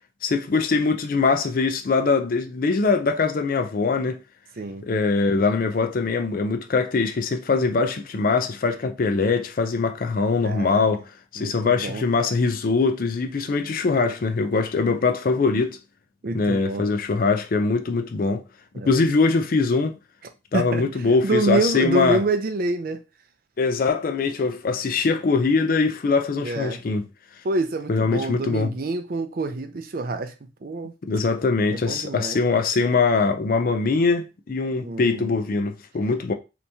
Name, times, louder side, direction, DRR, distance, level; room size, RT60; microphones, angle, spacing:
voice 1, 0.2-4.2 4.9-15.8 16.3-18.4 18.9-20.0 20.5-22.2 23.6-27.0 27.9-28.7 31.1-36.3, left 4 dB, 50° left, 0.4 m, -22 dB
voice 2, 4.6-4.9 10.4-10.8 11.4-12.0 16.2-16.9 18.7-19.0 20.5-20.8 21.2-23.0 26.4-26.8 27.4-30.3 30.6-30.9 31.7-32.4 34.8-35.3, right 2 dB, 50° right, 0.5 m, -27 dB
3.4 x 2.9 x 2.7 m
head